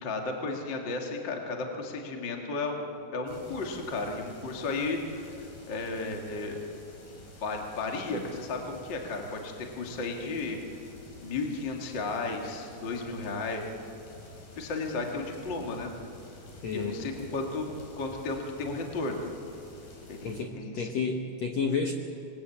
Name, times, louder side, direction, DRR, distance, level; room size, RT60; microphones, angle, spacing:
voice 1, 0.0-2.8 3.1-6.6 7.4-10.6 11.2-13.6 14.6-15.9 16.7-17.7 18.0-19.2 20.1-20.9, left 3 dB, 35° left, 2 dB, 2.1 m, -34 dB
sound 1, 3.3-20.4, left 1 dB, 55° left, 6.3 m, -50 dB
voice 2, 16.6-17.0 20.2-21.9, left 5 dB, 85° left, 3 dB, 1.5 m, -31 dB
26.5 x 21.0 x 8.7 m, 3.0 s
omnidirectional pair, 5.1 m